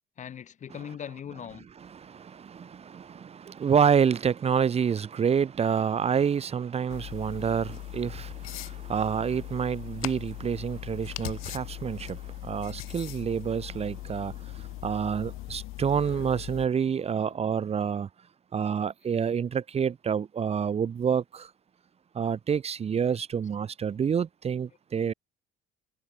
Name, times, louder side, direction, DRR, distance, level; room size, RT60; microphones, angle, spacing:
voice 1, 0.2-1.7 15.8-16.2 17.2-17.3 18.6-18.9, left 9 dB, 35° left, 1.0 m, -41 dB
voice 2, 1.8-18.1 18.5-21.5 22.1-25.1, right 7 dB, 30° right, 1.0 m, -28 dB
sound 1, 6.9-16.7, left 19 dB, 90° left, 4.6 m, -39 dB
cardioid pair, 145°, 21 cm